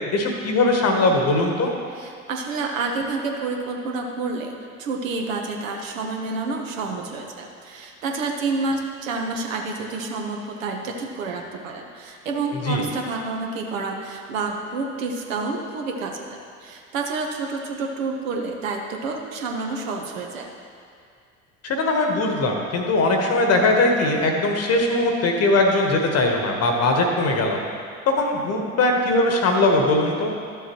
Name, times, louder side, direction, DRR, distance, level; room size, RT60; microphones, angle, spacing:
voice 1, 0.1-1.7 12.6-12.8 21.6-27.6 28.1-30.3, left 2 dB, 35° left, 2 dB, 1.1 m, -20 dB
voice 2, 1.9-4.5 4.8-16.3 16.6-20.5, right 3 dB, 70° right, 2 dB, 1.1 m, -29 dB
12.0 x 7.0 x 3.0 m, 2.2 s
figure-of-eight pair, 70°, 41 cm